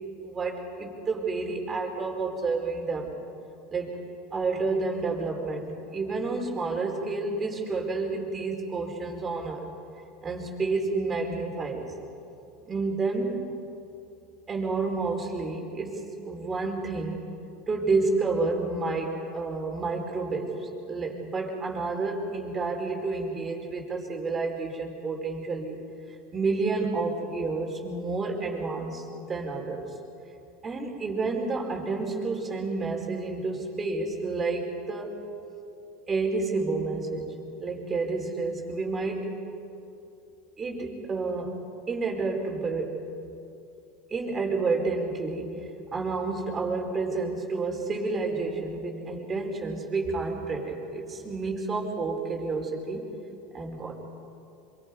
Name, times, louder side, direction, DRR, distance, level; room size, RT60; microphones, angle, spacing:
voice 1, 0.2-3.2 3.7-4.0 4.3-9.7 10.2-12.0 12.7-13.4 14.5-17.3 17.7-25.8 26.3-29.9 30.6-35.3 36.1-39.4 40.6-41.6 41.9-43.0 44.1-53.1 53.5-53.9, right 3 dB, 30° right, 1 dB, 4.8 m, -30 dB
27.0 x 24.0 x 5.5 m, 2.7 s
hypercardioid pair, 95°, 0 cm